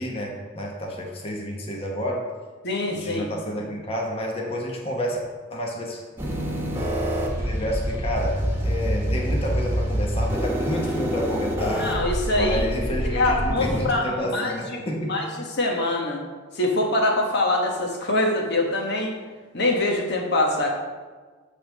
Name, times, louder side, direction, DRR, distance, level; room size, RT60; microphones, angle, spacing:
voice 1, 0.0-2.3 2.9-5.2 5.5-6.0 7.4-11.9 12.3-15.2, equal, 30° left, -1 dB, 1.1 m, -29 dB
voice 2, 2.6-3.3 11.8-12.7 13.1-15.3 15.6-16.2 16.5-19.1 19.5-20.7, left 2 dB, 60° left, 1 dB, 1.2 m, -24 dB
sound 1, 6.2-13.8, equal, 15° right, 1.4 m, -26 dB
8.9 x 3.6 x 6.6 m, 1.4 s
head